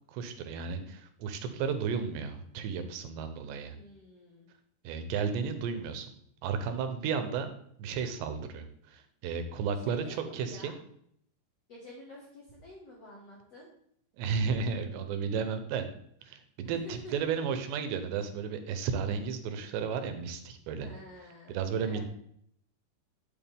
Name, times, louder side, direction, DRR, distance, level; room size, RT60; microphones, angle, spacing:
voice 1, 0.1-3.8 4.8-6.1 6.4-7.5 7.8-10.7 14.2-15.9 16.2-20.9 21.5-22.0, right 6 dB, 80° right, 8 dB, 3.2 m, -33 dB
voice 2, 3.7-4.5 9.7-10.8 11.7-13.7 16.6-17.4 20.8-22.0, left 1 dB, 50° left, -3 dB, 2.1 m, -49 dB
11.0 x 7.7 x 3.6 m, 0.68 s
omnidirectional pair, 5.0 m